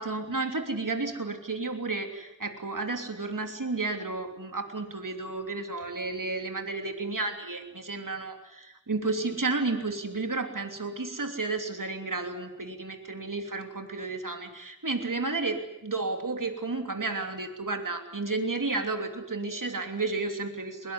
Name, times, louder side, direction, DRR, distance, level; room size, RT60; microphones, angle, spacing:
voice 1, 0.0-20.9, right 3 dB, 80° right, 5 dB, 3.2 m, -32 dB
23.0 x 20.5 x 9.7 m, 0.86 s
wide cardioid pair, 40°, 32 cm